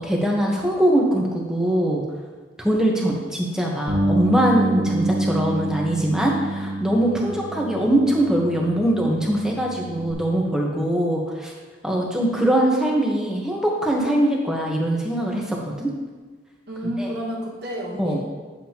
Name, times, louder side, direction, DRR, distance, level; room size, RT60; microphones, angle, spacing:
voice 1, 0.0-2.0 2.6-11.5 11.8-15.9 16.8-17.1 18.0-18.2, right 1 dB, 5° right, -2 dB, 1.1 m, -22 dB
Bass guitar, 3.9-10.1, right 1 dB, 40° right, 1.5 m, -27 dB
voice 2, 7.0-7.3 16.7-18.2, equal, 60° right, -3 dB, 1.7 m, -30 dB
9.6 x 7.6 x 2.9 m, 1.4 s
head